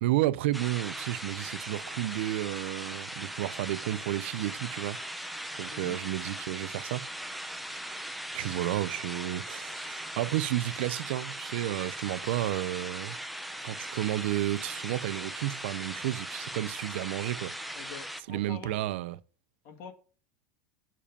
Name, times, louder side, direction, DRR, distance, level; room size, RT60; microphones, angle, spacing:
voice 1, 0.0-5.0 5.6-7.1 8.3-13.2 13.6-17.5 18.3-19.2, right 15 dB, 80° right, 0.5 m, -32 dB
sound 1, 0.5-18.2, right 1 dB, ahead, 0.6 m, -39 dB
voice 2, 17.7-18.8 19.6-19.9, left 6 dB, 55° left, 1.8 m, -45 dB
6.8 x 5.0 x 6.9 m
supercardioid pair, 140°, 6 cm